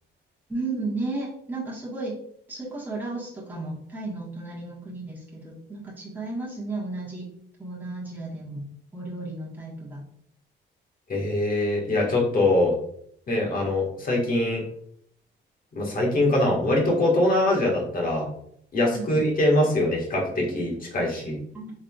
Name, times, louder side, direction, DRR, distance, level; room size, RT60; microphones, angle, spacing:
voice 1, 0.5-2.1 2.5-7.3 7.6-8.6 8.9-10.0 18.9-19.2 21.5-21.7, right 2 dB, 10° right, -6 dB, 1.4 m, -34 dB
voice 2, 11.1-12.7 13.3-14.6 15.7-18.3 18.7-21.4, left 1 dB, 45° left, -2 dB, 1.5 m, -23 dB
4.0 x 3.4 x 2.3 m, 0.65 s
cardioid pair, 90°, 20 cm